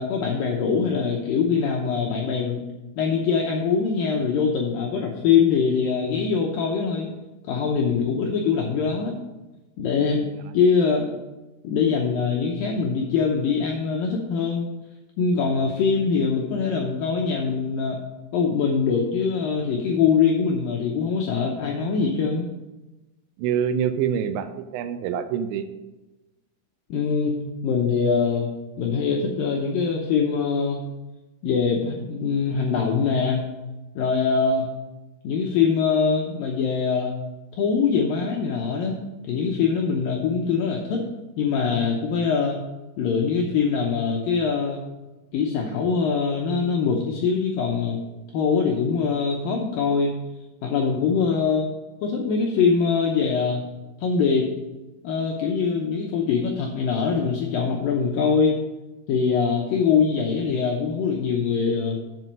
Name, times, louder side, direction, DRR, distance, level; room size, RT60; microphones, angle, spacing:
voice 1, 0.0-2.6 3.0-7.1 7.4-9.2 9.8-10.3 10.5-11.1 11.6-14.7 15.2-18.0 18.3-22.5 26.9-28.5 28.8-30.9 31.4-33.5 34.0-34.7 35.2-37.2 37.5-39.0 39.2-41.0 41.4-42.6 43.0-44.8 45.3-48.0 48.3-50.1 50.6-51.7 52.0-53.6 54.0-54.5 55.0-58.6 59.1-62.0, left 5 dB, 85° left, 0 dB, 2.0 m, -23 dB
voice 2, 23.4-25.7, right 8 dB, 85° right, 10 dB, 2.9 m, -25 dB
7.8 x 7.6 x 5.4 m, 1.1 s
omnidirectional pair, 5.2 m